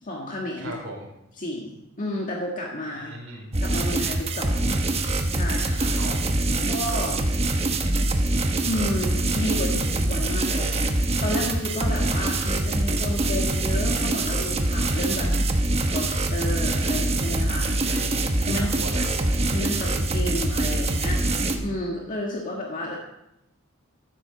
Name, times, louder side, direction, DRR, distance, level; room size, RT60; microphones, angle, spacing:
voice 1, 0.0-0.7 1.4-3.1 3.6-4.8 5.3-6.0 6.7-7.2 8.7-10.8 11.2-15.3 15.8-17.7 18.5-18.7 19.5-23.0, left 1 dB, 40° left, -1 dB, 1.7 m, -31 dB
voice 2, 0.6-1.1 3.0-3.5 5.9-6.8 17.8-19.4, right 1 dB, 80° right, -1 dB, 4.6 m, -39 dB
sound 1, 3.5-21.6, right 2 dB, 30° right, 1.1 m, -24 dB
14.5 x 11.5 x 4.0 m, 0.85 s
head